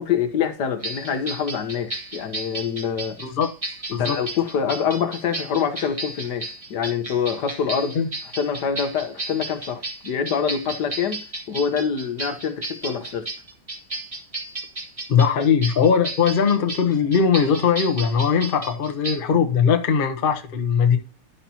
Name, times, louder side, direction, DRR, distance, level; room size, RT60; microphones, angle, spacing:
voice 1, 0.0-3.2 3.9-8.0 8.4-11.2 11.5-13.2 15.4-15.5, left 7 dB, 60° left, 1.3 m, -25 dB
sound 1, 0.8-19.2, right 2 dB, 20° right, 1.3 m, -34 dB
voice 2, 3.2-3.5 3.9-4.2 7.9-8.1 15.1-21.0, left 6 dB, 45° left, 0.7 m, -20 dB
11.5 x 5.8 x 2.8 m
omnidirectional pair, 2.2 m